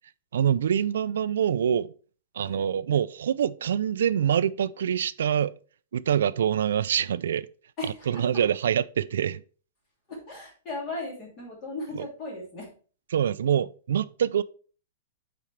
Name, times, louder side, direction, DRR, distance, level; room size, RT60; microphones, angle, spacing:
voice 1, 0.3-1.9 2.3-5.5 5.9-7.5 8.1-9.4 12.0-12.1 13.1-14.4, right 9 dB, 80° right, 0.3 m, -25 dB
voice 2, 7.8-8.2 10.1-12.7, left 2 dB, 25° left, 2.5 m, -36 dB
8.4 x 4.3 x 3.2 m
supercardioid pair, 175°, 0 cm